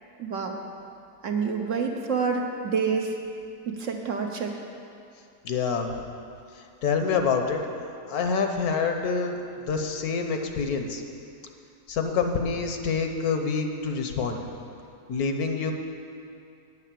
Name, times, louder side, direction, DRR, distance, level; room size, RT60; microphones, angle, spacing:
voice 1, 0.2-0.6 1.2-3.2 3.7-4.6, right 5 dB, 55° right, 2 dB, 1.1 m, -28 dB
voice 2, 5.4-5.9 6.8-7.6 8.1-9.4 9.7-11.0 11.9-14.4 15.1-15.7, left 5 dB, 70° left, 5 dB, 1.3 m, -26 dB
9.3 x 8.2 x 7.5 m, 2.5 s
omnidirectional pair, 1.7 m